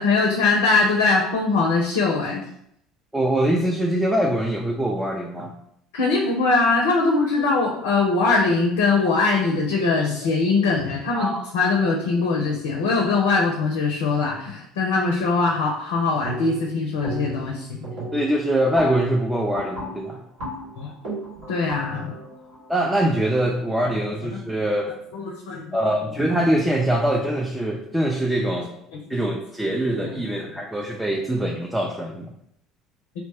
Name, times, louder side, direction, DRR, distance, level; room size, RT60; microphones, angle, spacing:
voice 1, 0.0-2.4 5.9-17.8 20.8-20.9 21.5-22.1 24.3-24.4 25.1-25.9 29.7-30.1 31.1-31.2, left 3 dB, 75° left, 0 dB, 0.4 m, -22 dB
voice 2, 3.1-5.5 11.1-11.4 18.1-20.2 22.7-24.9 25.7-28.7 29.1-32.3, right 1 dB, 10° right, 0 dB, 0.4 m, -23 dB
sound 1, 16.2-16.7 17.0-17.5 17.8-23.7, right 1 dB, 75° right, 1.5 m, -35 dB
2.8 x 2.1 x 3.4 m, 0.74 s
hypercardioid pair, 65°, 0 cm